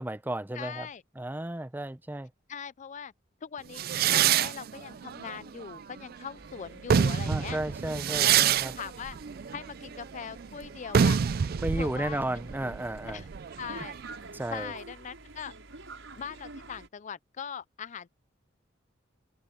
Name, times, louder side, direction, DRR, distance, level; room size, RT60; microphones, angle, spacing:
voice 1, 0.0-0.9 1.2-2.3 7.3-8.7 11.6-13.2 13.7-13.8 14.3-14.7, right 1 dB, 10° right, 0.6 m, -33 dB
voice 2, 0.5-1.0 2.5-3.1 3.4-7.6 8.2-8.5 8.7-9.2 9.5-11.2 11.8-12.7 13.1-13.2 13.6-14.0 14.5-15.5 16.2-18.1, left 7 dB, 40° left, 0.4 m, -41 dB
sound 1, 3.8-6.2 6.7-14.2, right 8 dB, 50° right, 0.4 m, -27 dB
sound 2, 6.4-16.9, right 3 dB, 80° right, 5.7 m, -49 dB
head